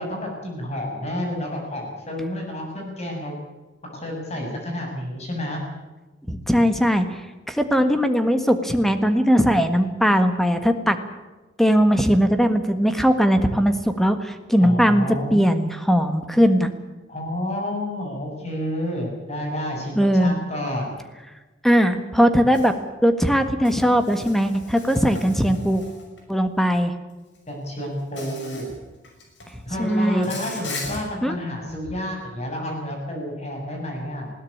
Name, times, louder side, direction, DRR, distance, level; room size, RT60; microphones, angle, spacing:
voice 1, 0.0-3.3 3.9-5.6 14.6-15.5 17.1-21.0 27.5-28.7 29.7-34.3, left 1 dB, 35° left, 1 dB, 7.3 m, -30 dB
voice 2, 6.3-7.2 7.5-11.0 11.6-16.7 19.9-20.3 21.6-22.7 23.0-25.8 26.3-26.9 29.8-30.3 31.2-31.4, equal, ahead, 8 dB, 1.6 m, -19 dB
Insect, 22.5-22.7 23.6-26.2 27.3-27.5 28.2-28.7 29.0-29.5 30.2-31.0, left 3 dB, 70° left, 6.1 m, -37 dB
20.5 x 16.5 x 8.7 m, 1.2 s
head